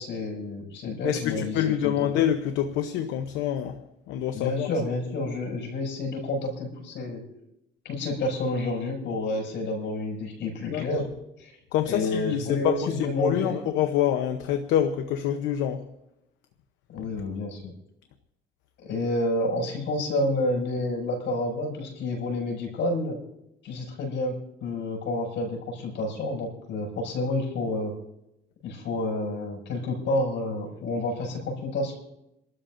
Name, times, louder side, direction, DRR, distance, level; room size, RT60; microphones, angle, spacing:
voice 1, 0.0-2.1 4.3-7.2 7.8-11.1 11.4-11.5 11.8-13.6 16.9-17.7 18.8-23.2 23.6-24.4 24.6-27.9 28.6-31.9, left 2 dB, 75° left, 6.3 m, -29 dB
voice 2, 1.0-4.7 10.7-10.9 11.7-15.9, left 10 dB, 90° left, 0.8 m, -26 dB
28.0 x 12.5 x 2.6 m
cardioid pair, 85°, 19 cm